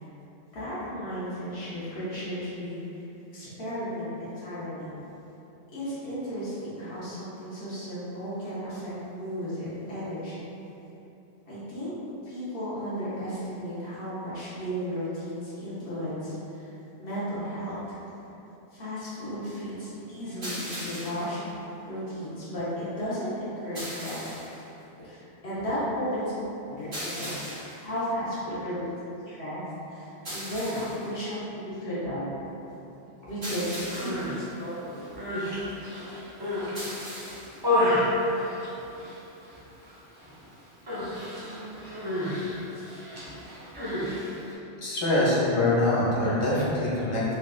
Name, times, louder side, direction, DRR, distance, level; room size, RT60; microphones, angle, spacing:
voice 1, 0.5-3.0 3.3-4.9 5.7-10.4 11.5-11.9 12.2-16.7 17.0-18.0 18.7-21.4 21.9-24.6 25.0-26.3 26.7-27.3 27.8-28.9 29.3-29.6 29.9-32.3 33.2-35.0, equal, 80° left, -11 dB, 1.2 m, -34 dB
sound 1, 20.4-21.3 23.8-24.6 26.9-27.8 30.3-31.1 33.4-34.3 36.8-37.6, equal, 50° right, 1.2 m, -37 dB
Human voice, 33.8-34.4 35.0-36.8 37.2-39.2 39.5-39.9 40.2-40.4 40.9-44.5, left 1 dB, 30° right, 0.5 m, -30 dB
voice 2, 44.8-47.3, left 1 dB, 35° left, -8 dB, 0.6 m, -24 dB
3.9 x 2.4 x 2.3 m, 2.9 s
omnidirectional pair, 1.1 m